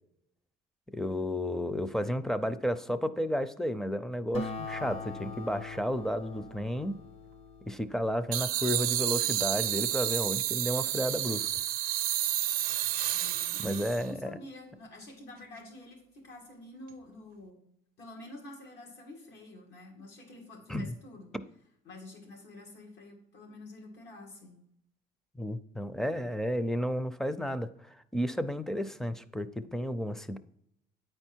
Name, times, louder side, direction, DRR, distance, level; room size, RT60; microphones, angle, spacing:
voice 1, 0.9-7.0 7.7-11.5 13.6-14.3 20.7-21.0 25.4-30.4, equal, 5° left, 13 dB, 0.4 m, -32 dB
Acoustic guitar, 4.3-9.2, left 3 dB, 40° left, 0.8 m, -42 dB
sound 1, 8.3-14.1, right 12 dB, 65° right, 0.5 m, -30 dB
voice 2, 13.1-17.6 18.0-21.3 21.8-24.6, left 2 dB, 80° left, 1 dB, 2.3 m, -48 dB
9.4 x 4.5 x 4.4 m, 0.77 s
cardioid pair, 110°, 17 cm